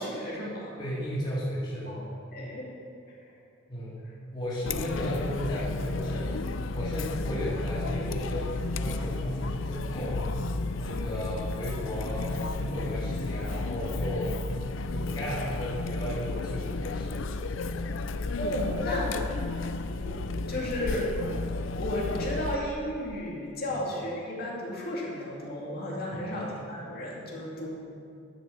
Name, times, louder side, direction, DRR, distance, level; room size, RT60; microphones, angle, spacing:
voice 1, 0.0-0.8 1.9-2.0 2.3-2.7 3.1-3.2 18.4-19.2 20.0-21.1 21.8-27.8, equal, 50° left, -4 dB, 2.4 m, -34 dB
voice 2, 0.8-1.9 3.7-4.0 4.3-6.4 6.7-10.4 10.7-14.3 14.9-17.2 17.5-17.7 26.1-26.2, equal, 25° left, -10 dB, 3.0 m, -34 dB
Chatter, 4.7-22.6, left 3 dB, 75° left, 0.5 m, -33 dB
11.0 x 6.2 x 7.0 m, 2.4 s
head